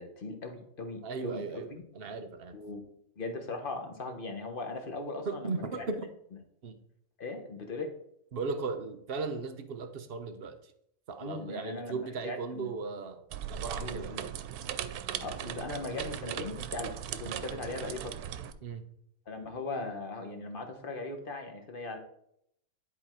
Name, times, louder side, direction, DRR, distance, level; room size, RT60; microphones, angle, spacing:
voice 1, 0.0-1.8 2.5-2.8 3.2-5.9 7.2-7.9 11.2-12.8 13.8-14.2 15.2-18.2 19.3-22.0, left 3 dB, 40° left, 5 dB, 1.2 m, -39 dB
voice 2, 1.0-1.7 2.0-2.6 5.3-6.0 6.6-6.8 8.3-10.6 11.1-13.2 13.5-14.2 18.6-18.8, right 4 dB, 50° right, 7 dB, 0.8 m, -36 dB
sound 1, 13.3-18.5, right 9 dB, 85° right, 1.1 m, -38 dB
10.5 x 4.0 x 4.4 m, 0.73 s
omnidirectional pair, 1.6 m